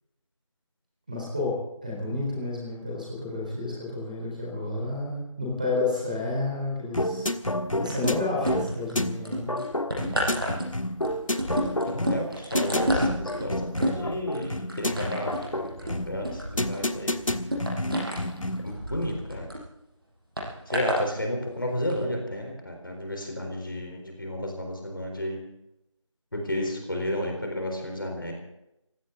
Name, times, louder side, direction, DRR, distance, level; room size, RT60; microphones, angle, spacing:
voice 1, 1.1-7.3 7.8-9.6, left 2 dB, 15° right, -2 dB, 4.1 m, -30 dB
sound 1, 6.9-18.8, left 1 dB, 85° left, 1.5 m, -30 dB
sound 2, 7.9-8.9 9.2-19.6 20.4-21.0 21.8-21.9, equal, 45° right, 6.9 m, -30 dB
voice 2, 11.9-17.2 18.6-19.5 20.7-25.4 26.3-28.3, left 1 dB, 45° left, 2 dB, 4.1 m, -32 dB
21.5 x 16.5 x 4.0 m, 0.86 s
figure-of-eight pair, 175°, 17 cm